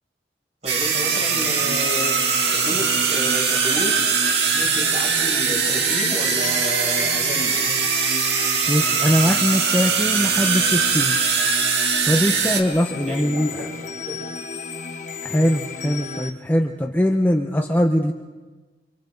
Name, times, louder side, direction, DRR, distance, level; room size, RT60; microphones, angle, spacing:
voice 1, 0.6-2.3 2.6-7.6 13.1-14.2, equal, 40° right, -2 dB, 7.1 m, -31 dB
sound 1, 0.7-12.6, right 6 dB, 70° right, 2.1 m, -21 dB
sound 2, 0.8-16.3, left 3 dB, 45° left, 1.2 m, -34 dB
voice 2, 8.7-11.1 12.0-13.7 15.2-18.1, equal, 10° left, 2 dB, 0.9 m, -21 dB
29.5 x 26.0 x 4.0 m, 1.3 s
head